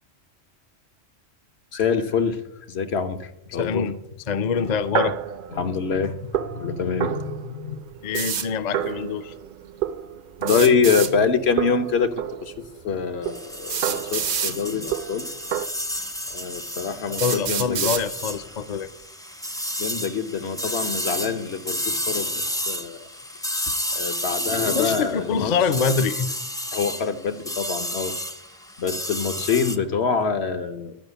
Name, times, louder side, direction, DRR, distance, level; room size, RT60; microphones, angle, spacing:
voice 1, 1.7-2.4 2.7-3.9 5.6-7.8 10.4-12.1 12.4-12.5 12.8-15.3 16.3-17.9 19.8-22.3 22.7-23.1 23.9-25.6 26.7-28.1 28.8-31.0, left 5 dB, 75° left, 8 dB, 1.2 m, -25 dB
voice 2, 3.6-4.0 4.3-5.2 8.0-9.3 17.1-18.9 24.6-26.3, left 6 dB, 50° left, 11 dB, 0.6 m, -25 dB
sound 1, 4.6-11.3 11.6-15.7, right 9 dB, 60° right, 0.6 m, -31 dB
sound 2, 8.1-8.5 10.4-11.1 12.6-12.7 13.7-14.6 15.6-15.7 16.3-16.4 17.2-18.0, right 7 dB, 80° right, 1.1 m, -27 dB
sound 3, 13.2-29.8, equal, 5° left, 0.5 m, -31 dB
12.0 x 5.6 x 8.1 m, 0.83 s
omnidirectional pair, 1.1 m